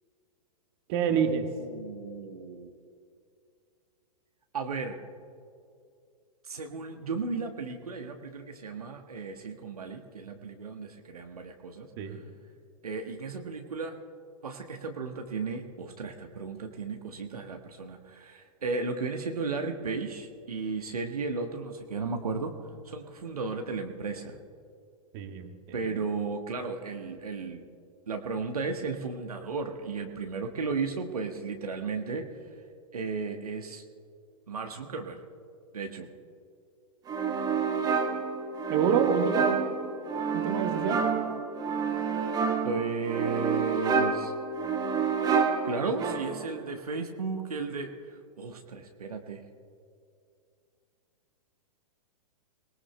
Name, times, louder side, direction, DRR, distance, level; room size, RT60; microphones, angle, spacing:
voice 1, 0.9-1.4 12.0-12.2 25.1-25.5 25.9-26.0 38.7-39.6 40.3-41.0, right 6 dB, 40° right, 5 dB, 1.5 m, -27 dB
voice 2, 1.6-2.7 4.5-5.0 6.4-11.9 12.8-13.9 14.4-22.5 22.8-24.4 25.7-27.6 28.1-32.3 32.9-33.8 34.5-35.2 35.7-36.1 42.6-44.3 45.6-49.4, right 4 dB, 70° right, 4 dB, 1.2 m, -34 dB
sound 1, 37.1-46.6, right 5 dB, 20° right, 1.4 m, -29 dB
27.0 x 19.0 x 2.2 m, 2.4 s
figure-of-eight pair, 110°, 20 cm